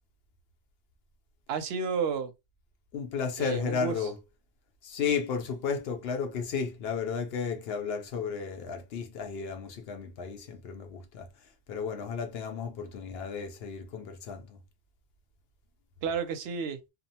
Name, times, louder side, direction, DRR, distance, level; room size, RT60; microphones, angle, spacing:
voice 1, 1.5-2.3 3.4-4.1 16.0-16.8, right 6 dB, 70° right, 0.8 m, -31 dB
voice 2, 2.9-4.2 4.8-11.3 11.7-14.6, left 6 dB, 65° left, 0.8 m, -33 dB
2.6 x 2.0 x 2.7 m
omnidirectional pair, 1.1 m